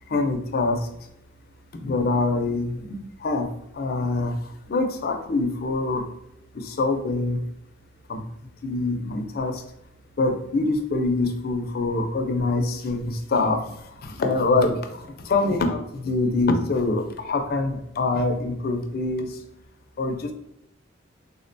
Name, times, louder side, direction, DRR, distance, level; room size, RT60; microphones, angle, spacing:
voice 1, 0.1-0.8 1.7-3.5 3.7-6.1 6.5-7.4 8.1-8.2 8.6-9.6 10.2-19.4 20.0-20.3, left 3 dB, 50° left, 5 dB, 0.4 m, -25 dB
3.6 x 2.1 x 2.6 m, 0.79 s
head